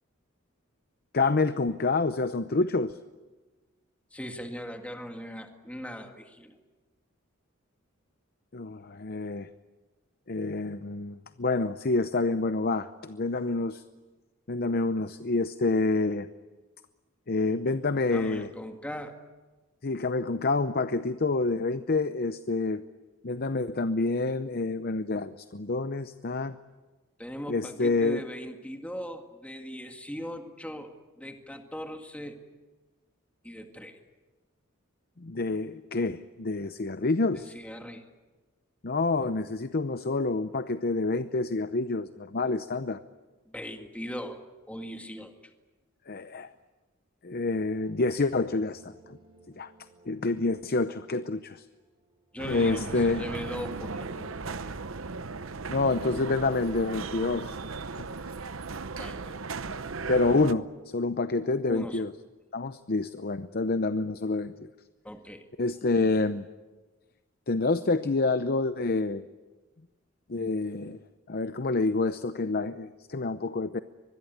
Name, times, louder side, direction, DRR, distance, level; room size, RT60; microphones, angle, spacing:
voice 1, 1.1-3.0 8.5-9.5 10.3-13.8 14.5-16.3 17.3-18.5 19.8-22.8 23.2-26.6 27.5-28.2 35.2-37.5 38.8-43.0 46.1-46.5 47.2-49.2 49.6-49.7 50.1-51.6 52.4-53.2 55.7-57.5 58.0-58.1 60.1-60.7 60.9-62.1 62.5-64.7 65.6-66.4 67.5-69.2 70.3-71.0 71.3-73.8, left 3 dB, 50° left, 11 dB, 0.7 m, -28 dB
voice 2, 4.1-6.6 18.1-19.2 27.2-32.4 33.4-34.0 37.3-38.0 43.5-44.4 44.7-45.4 52.3-54.8 59.0-59.8 61.7-62.1 65.0-65.5, equal, 5° left, 5 dB, 2.0 m, -39 dB
sound 1, 47.4-57.9, right 2 dB, 25° right, 7.8 m, -58 dB
sound 2, 52.4-60.5, right 4 dB, 75° right, 0.9 m, -37 dB
24.5 x 21.5 x 9.4 m, 1.3 s
head